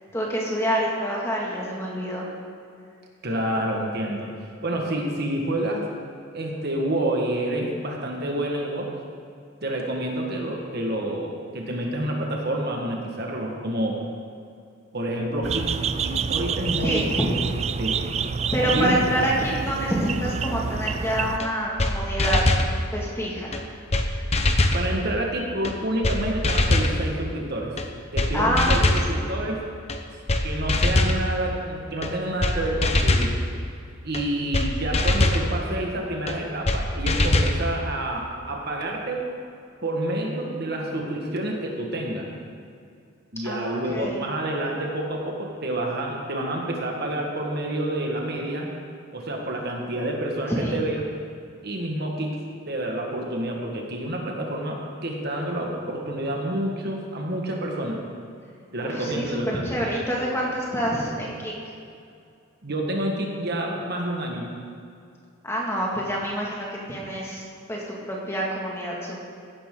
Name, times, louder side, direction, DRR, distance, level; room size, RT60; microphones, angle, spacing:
voice 1, 0.1-2.3 16.8-17.3 18.5-22.5 22.9-23.6 28.3-29.3 40.4-40.6 43.4-44.2 50.5-50.8 58.9-59.4 59.6-61.5 65.4-67.4 67.7-69.2, equal, 10° left, -4 dB, 2.1 m, -27 dB
voice 2, 3.2-4.3 4.6-5.9 6.3-8.9 9.6-14.0 14.9-15.8 16.0-17.1 17.8-18.0 18.7-19.0 24.7-27.8 28.1-29.6 30.4-33.3 34.0-39.3 39.8-42.3 43.3-48.7 49.1-51.0 51.6-52.3 52.7-58.0 58.7-59.6 62.6-64.5, right 1 dB, 50° right, 0 dB, 1.6 m, -28 dB
sound 1, 15.4-21.4, right 6 dB, 30° right, 0.3 m, -28 dB
sound 2, 21.4-21.5 21.8-21.9 22.2-22.7 23.5-23.6 23.9-24.1 24.3-24.8 25.6-25.7 26.0-26.2 26.4-26.9 27.8-27.9 28.2-28.3 28.6-29.1 29.9-30.0 30.3-30.4 30.7-31.2 32.0-32.1 32.4-32.5 32.8-33.3 34.1-34.2 34.5-34.7 34.9-35.4 36.3-36.4 36.7-36.8 37.1-37.6, left 2 dB, 30° left, 0.8 m, -21 dB
15.5 x 11.5 x 3.8 m, 2.4 s
head